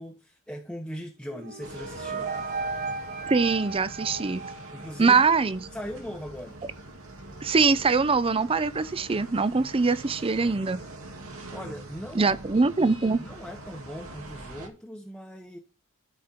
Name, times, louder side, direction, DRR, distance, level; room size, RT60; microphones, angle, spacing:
voice 1, 0.0-2.3 4.7-5.2 5.7-6.6 11.5-12.9 13.2-15.6, equal, 5° left, 1.0 m, -40 dB
sound 1, 1.2-5.2, right 4 dB, 45° right, 3.3 m, -35 dB
sound 2, 1.6-14.7, right 2 dB, 80° right, 2.4 m, -44 dB
voice 2, 3.3-4.4 5.0-5.6 7.4-10.8 12.1-13.2, right 4 dB, 25° right, 0.5 m, -23 dB
13.0 x 5.3 x 4.4 m
head